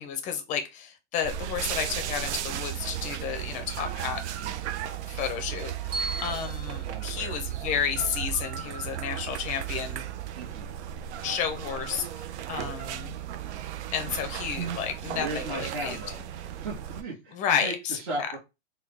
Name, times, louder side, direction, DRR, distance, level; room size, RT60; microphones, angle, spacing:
voice 1, 0.0-4.2 5.1-10.1 11.2-13.2 13.9-16.0 17.3-18.3, left 8 dB, 20° left, 0.5 m, -32 dB
sound 1, 1.2-17.0, right 10 dB, 80° right, 0.5 m, -35 dB
Bell, 5.9-8.1, right 2 dB, 15° right, 0.8 m, -38 dB
voice 2, 6.8-7.4 10.4-10.8 14.0-14.3 15.2-16.2 16.6-17.4 17.6-18.4, right 2 dB, 55° right, 1.5 m, -36 dB
3.6 x 2.2 x 3.3 m
supercardioid pair, 155°, 34 cm